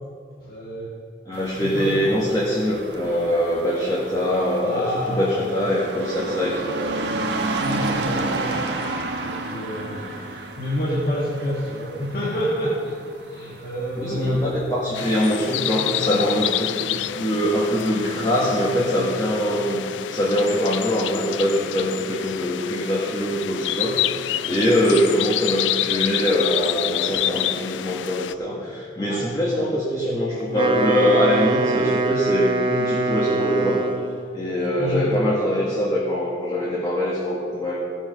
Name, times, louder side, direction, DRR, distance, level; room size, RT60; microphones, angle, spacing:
voice 1, 0.4-0.9 1.5-2.2 4.6-5.5 7.6-8.6 9.2-14.5 16.0-16.4 24.5-24.7 28.6-28.7 29.0-29.3 34.8-35.2, equal, 55° left, -6 dB, 1.8 m, -28 dB
voice 2, 1.3-6.9 14.0-19.8 20.1-24.0 24.4-33.8 34.3-37.8, equal, 20° left, -7 dB, 2.0 m, -23 dB
sound 1, 1.3-18.7, right 2 dB, 75° right, 1.4 m, -32 dB
sound 2, 14.9-28.3, left 13 dB, 90° left, 0.4 m, -28 dB
Wind instrument woodwind instrument, 30.4-34.3, right 2 dB, 30° right, 0.7 m, -24 dB
16.5 x 7.2 x 5.6 m, 2.4 s
head